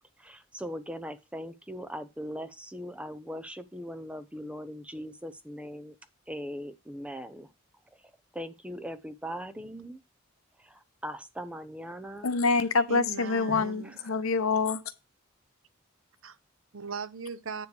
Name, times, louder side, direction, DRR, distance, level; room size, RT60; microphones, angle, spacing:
voice 1, 0.2-6.0 6.3-7.5 8.3-10.0 10.6-12.4 13.8-14.2, equal, 5° right, 0.7 m, -40 dB
voice 2, 12.2-14.8, left 4 dB, 80° left, 0.8 m, -26 dB
voice 3, 12.9-14.0 16.2-16.4 16.7-17.7, right 4 dB, 65° right, 0.7 m, -39 dB
9.5 x 3.2 x 6.8 m
head